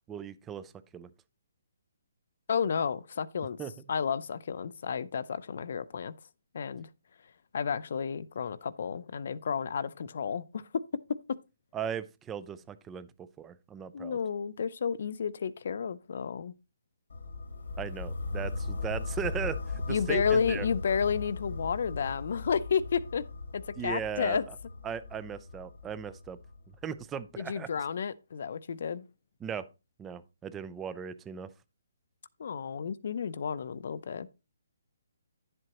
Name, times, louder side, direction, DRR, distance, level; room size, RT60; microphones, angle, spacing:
voice 1, 0.1-1.1 3.6-3.7 11.7-14.2 17.8-20.7 23.8-24.4 24.8-26.4 26.8-27.7 29.4-29.7 30.0-31.5, right 7 dB, 10° right, 0.3 m, -37 dB
voice 2, 2.5-3.6 3.9-6.1 6.5-6.9 7.5-10.7 13.9-16.5 19.9-23.2 23.5-24.4 27.4-29.1 32.4-34.3, left 6 dB, 50° left, 0.5 m, -31 dB
sound 1, 17.1-27.0, left 3 dB, 75° left, 1.3 m, -38 dB
11.0 x 7.7 x 2.9 m
hypercardioid pair, 175°, 0 cm